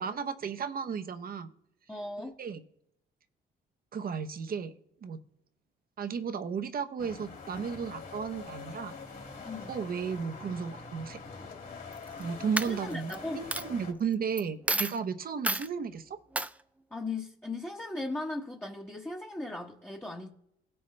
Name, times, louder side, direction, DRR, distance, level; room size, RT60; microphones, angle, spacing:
voice 1, 0.0-1.5 2.4-2.6 3.9-4.7 5.0-5.2 6.0-8.9 9.7-11.2 12.2-16.2, right 6 dB, 50° right, 0.8 m, -34 dB
voice 2, 1.9-2.4 9.4-9.7 12.7-13.4 16.9-20.3, left 2 dB, 10° left, 1.0 m, -37 dB
sound 1, 7.0-13.9, left 4 dB, 45° left, 2.3 m, -44 dB
Coin (dropping), 11.9-12.2 12.6-13.2 13.5-13.6 14.4-14.5 14.7-15.0 15.4-15.7 16.3-16.5, right 2 dB, 5° right, 0.4 m, -30 dB
16.5 x 5.6 x 3.3 m
cardioid pair, 90°, 20 cm